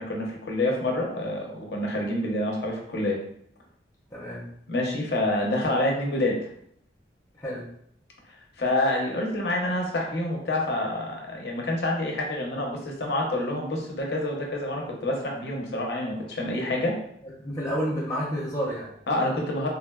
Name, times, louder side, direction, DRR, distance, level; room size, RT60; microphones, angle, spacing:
voice 1, 0.0-3.2 4.7-6.4 8.6-17.0 19.1-19.7, left 1 dB, 65° left, -1 dB, 0.6 m, -27 dB
voice 2, 4.1-4.5 7.4-7.7 17.4-18.9, equal, 15° left, -5 dB, 0.5 m, -30 dB
3.6 x 2.1 x 2.2 m, 0.68 s
head